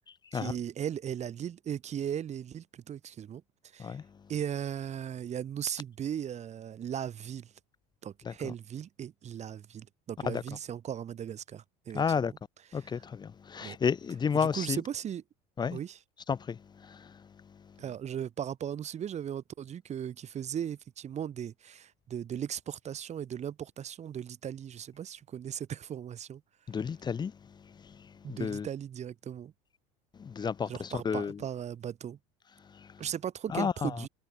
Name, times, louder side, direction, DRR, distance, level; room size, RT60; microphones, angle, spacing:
voice 1, 0.3-3.4 3.7-4.0 4.3-7.5 8.0-12.0 12.8-13.0 13.6-13.8 14.3-15.2 15.7-16.0 17.8-26.4 28.2-29.5 30.7-32.2 33.0-34.1, right 9 dB, 40° right, 5.4 m, -37 dB
voice 2, 11.9-12.3 12.7-14.8 15.6-15.8 16.3-17.2 26.7-27.3 27.8-28.0 28.3-28.7 30.2-31.4 32.7-32.9 33.5-34.0, left 6 dB, 25° left, 0.8 m, -31 dB
supercardioid pair, 85°, 17 cm